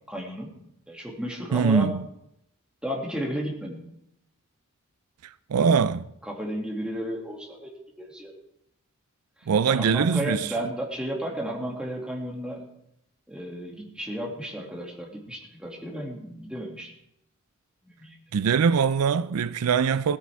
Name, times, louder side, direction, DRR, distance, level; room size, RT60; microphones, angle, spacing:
voice 1, 0.1-0.5 0.9-1.9 2.8-3.8 5.6-5.8 6.3-8.3 9.7-12.6 13.3-16.9 17.9-18.2, equal, 5° right, 2.3 m, -33 dB
voice 2, 1.5-2.0 5.5-6.0 9.5-10.5 18.3-20.2, right 6 dB, 90° right, 0.4 m, -22 dB
16.5 x 14.0 x 3.5 m
head